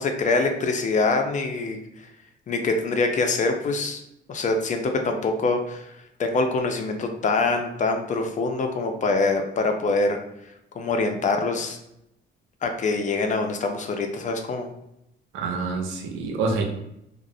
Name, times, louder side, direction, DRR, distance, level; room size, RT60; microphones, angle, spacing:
voice 1, 0.0-1.8 2.5-4.0 4.3-5.9 6.2-10.2 10.7-11.8 12.6-14.7, left 3 dB, 40° left, 5 dB, 0.4 m, -24 dB
voice 2, 15.3-16.6, right 4 dB, 90° right, 3 dB, 0.5 m, -27 dB
2.4 x 2.0 x 2.6 m, 0.82 s
cardioid pair, 90°, 20 cm